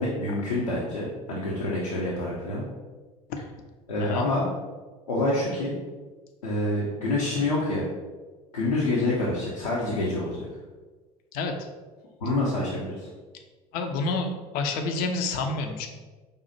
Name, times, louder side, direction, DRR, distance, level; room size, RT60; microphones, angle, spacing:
voice 1, 0.0-2.6 3.9-4.4 5.1-5.7 6.4-7.9 8.5-10.5 12.2-13.1, left 2 dB, 80° left, -5 dB, 0.9 m, -27 dB
voice 2, 13.7-15.9, left 3 dB, 50° left, 4 dB, 0.6 m, -28 dB
5.3 x 2.4 x 4.1 m, 1.3 s
figure-of-eight pair, 70°, 19 cm